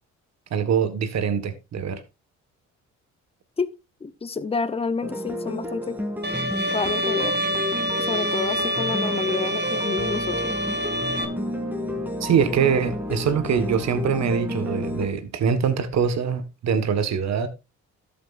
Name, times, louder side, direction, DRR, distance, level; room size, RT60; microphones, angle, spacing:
voice 1, 0.5-2.0 12.2-17.5, right 7 dB, 60° right, 1.6 m, -23 dB
voice 2, 4.0-6.0 6.7-7.4 8.0-10.6, left 4 dB, 20° left, 0.8 m, -29 dB
sound 1, 5.0-15.1, left 1 dB, 5° right, 2.9 m, -31 dB
Bowed string instrument, 6.2-11.3, right 1 dB, 35° right, 1.6 m, -26 dB
13.0 x 7.8 x 2.5 m
cardioid pair, 90°, 30 cm